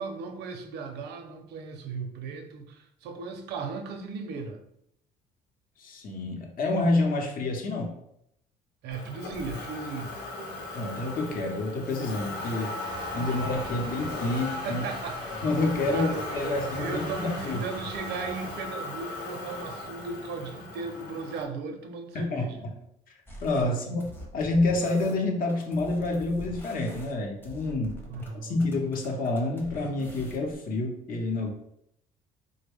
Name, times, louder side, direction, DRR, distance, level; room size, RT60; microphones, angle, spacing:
voice 1, 0.0-4.6 8.8-10.1 13.2-13.3 14.6-15.4 15.9-22.6 23.7-23.9 28.1-28.6, right 4 dB, 75° right, 5 dB, 0.6 m, -37 dB
voice 2, 5.8-8.0 10.7-12.8 13.1-14.9 15.4-17.7 22.1-22.7 23.4-24.0 24.3-28.0 28.4-31.5, left 2 dB, 55° left, 2 dB, 0.8 m, -28 dB
Motor vehicle (road), 8.9-21.4, left 2 dB, 85° left, 0.9 m, -37 dB
sound 1, 12.8-18.6, right 3 dB, 30° right, 0.4 m, -44 dB
sound 2, 23.3-23.6 24.0-28.3 28.6-30.5, right 1 dB, 15° left, 0.7 m, -44 dB
3.3 x 2.1 x 3.5 m, 0.76 s
cardioid pair, 110°, 17 cm